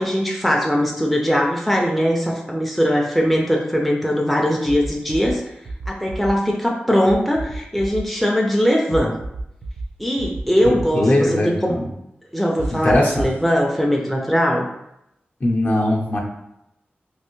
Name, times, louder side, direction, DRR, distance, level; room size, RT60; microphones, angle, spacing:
voice 1, 0.0-5.4 5.9-9.1 10.0-11.8 12.3-14.7, equal, ahead, 0 dB, 0.4 m, -20 dB
sound 1, 4.7-5.3 5.7-6.3 7.1-8.0 8.9-9.9 10.2-10.8 12.6-13.4, right 2 dB, 85° right, 0.5 m, -29 dB
voice 2, 10.6-11.9 12.7-13.3 15.4-16.2, left 1 dB, 45° left, -1 dB, 0.6 m, -20 dB
3.2 x 2.6 x 3.0 m, 0.83 s
wide cardioid pair, 105°, 4 cm